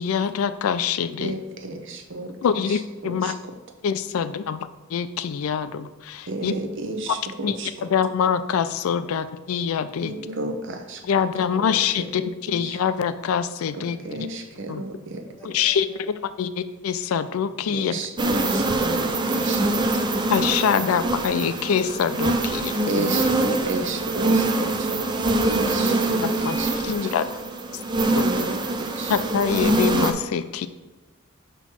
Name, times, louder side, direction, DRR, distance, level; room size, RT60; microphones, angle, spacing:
voice 1, 0.0-1.4 2.4-3.3 3.8-6.5 7.1-7.2 7.4-10.1 11.0-14.0 14.7-14.8 15.4-18.0 20.3-23.1 26.2-27.3 28.2-28.3 29.1-30.7, left 7 dB, 80° left, 12 dB, 0.4 m, -25 dB
voice 2, 1.2-2.3 2.7-2.8 3.0-3.3 6.3-7.7 10.0-11.0 11.5-12.0 12.5-12.8 13.8-15.2 17.7-19.8 22.9-25.0 25.4-26.7 28.1-28.6 29.0-29.1, right 2 dB, 60° right, 5 dB, 0.7 m, -32 dB
voice 3, 15.3-16.0 16.5-16.6 25.1-25.9 27.1-28.5, left 1 dB, 10° left, 1 dB, 0.8 m, -47 dB
sound 1, 18.2-30.1, right 2 dB, 20° right, 0.4 m, -24 dB
6.2 x 3.0 x 5.7 m, 1.2 s
head